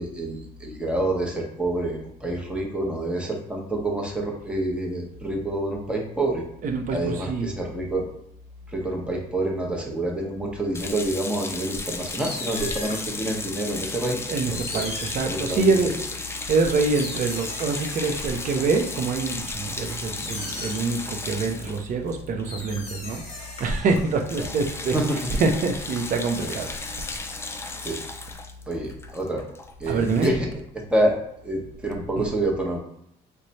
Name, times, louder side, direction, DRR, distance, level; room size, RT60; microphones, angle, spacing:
voice 1, 0.0-6.4 6.9-8.1 8.7-14.2 14.5-14.6 15.2-15.7 24.9-25.3 26.4-26.5 27.8-28.0 28.7-29.4 29.8-30.5 30.9-31.2 31.4-32.8, right 1 dB, 5° right, -1 dB, 0.8 m, -27 dB
voice 2, 6.6-7.5 14.3-16.0 16.5-27.0 29.9-30.3 32.2-32.3, right 4 dB, 50° right, 4 dB, 0.6 m, -25 dB
sound 1, 10.7-23.1 23.4-23.6 23.9-30.3, left 3 dB, 15° left, 0.3 m, -35 dB
sound 2, 11.9-13.3 14.1-14.2 14.5-15.8 16.4-18.9 19.4-21.0 22.1-22.2 22.4-24.5, left 2 dB, 40° left, 1.1 m, -38 dB
3.1 x 2.2 x 4.0 m, 0.75 s
cardioid pair, 110°, 17 cm